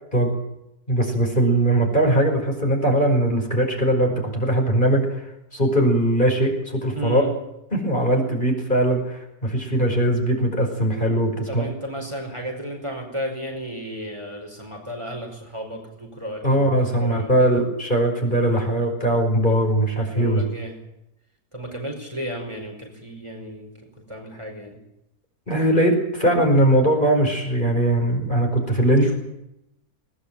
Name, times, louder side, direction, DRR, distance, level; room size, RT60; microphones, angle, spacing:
voice 1, 0.9-5.2 5.5-7.2 7.7-11.6 16.4-20.4 25.5-29.1, right 1 dB, 30° left, 2 dB, 5.5 m, -20 dB
voice 2, 6.9-7.3 11.5-16.7 17.0-17.6 20.1-20.7 21.5-23.7 24.1-24.8 28.9-29.2, equal, 20° right, 1 dB, 5.2 m, -33 dB
20.5 x 19.5 x 8.9 m, 0.85 s
omnidirectional pair, 1.6 m